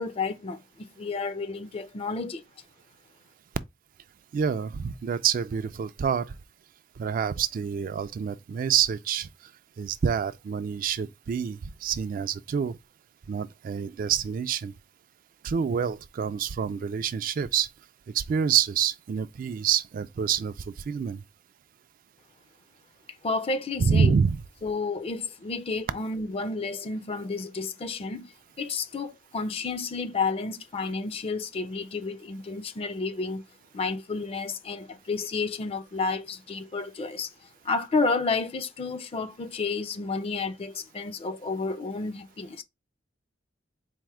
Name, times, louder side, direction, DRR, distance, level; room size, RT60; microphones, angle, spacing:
voice 1, 0.0-2.4 23.2-24.2 24.6-28.3 28.6-33.4 33.7-37.3 37.6-42.6, left 4 dB, 30° left, 0.4 m, -31 dB
voice 2, 4.3-6.3 7.0-9.3 9.8-12.8 13.3-14.7 15.4-17.7 18.1-21.2 23.8-24.4, right 7 dB, 50° right, 0.3 m, -27 dB
4.3 x 2.1 x 4.6 m
head